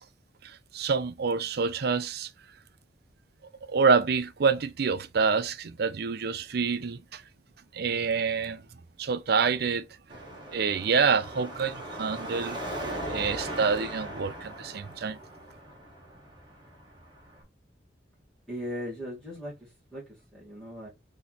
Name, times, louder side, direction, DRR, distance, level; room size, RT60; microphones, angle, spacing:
voice 1, 0.4-2.3 3.7-7.2 7.7-8.6 9.0-9.9 10.5-12.6 13.1-15.2, right 5 dB, 60° right, 0.5 m, -27 dB
Car passing by / Traffic noise roadway noise / Engine, 10.1-17.4, right 1 dB, 25° right, 1.8 m, -39 dB
voice 2, 18.5-20.0 20.3-20.9, equal, ahead, 2.3 m, -38 dB
4.2 x 3.1 x 4.0 m
head